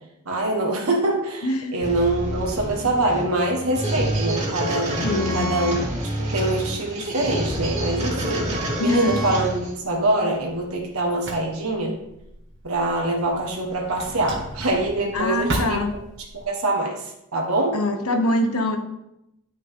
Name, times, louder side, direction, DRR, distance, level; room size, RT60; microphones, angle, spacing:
voice 1, 0.2-4.9 5.3-5.9 6.2-12.0 12.6-15.8 16.3-17.0 17.3-17.8, right 2 dB, 75° right, 0 dB, 1.6 m, -24 dB
voice 2, 1.4-1.7 5.0-5.5 8.8-9.3 15.1-16.0 17.7-18.8, left 1 dB, 80° left, 5 dB, 1.2 m, -23 dB
sound 1, 1.8-9.8, right 1 dB, 35° right, 2.1 m, -27 dB
Drawer open or close, 7.1-16.4, right 1 dB, 55° right, 1.5 m, -37 dB
10.0 x 6.3 x 3.7 m, 0.87 s
head